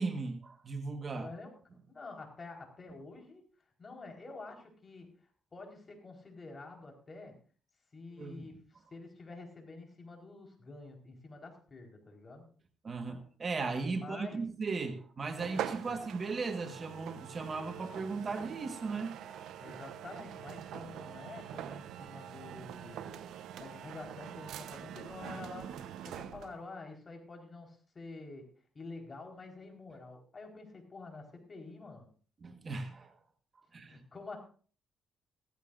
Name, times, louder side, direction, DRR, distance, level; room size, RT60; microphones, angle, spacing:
voice 1, 0.0-1.3 8.2-8.6 12.8-19.1 32.4-33.2 33.7-34.0, right 4 dB, 40° right, 1.5 m, -37 dB
voice 2, 1.1-1.5 1.9-3.4 3.8-7.4 7.9-8.6 8.9-12.5 13.9-14.4 15.7-16.0 19.6-23.2 23.6-28.5 28.7-32.1 33.9-34.4, left 3 dB, 35° left, 4.4 m, -48 dB
sound 1, 15.3-26.6, right 10 dB, 80° right, 0.9 m, -44 dB
16.0 x 15.0 x 2.6 m
cardioid pair, 90°, 0 cm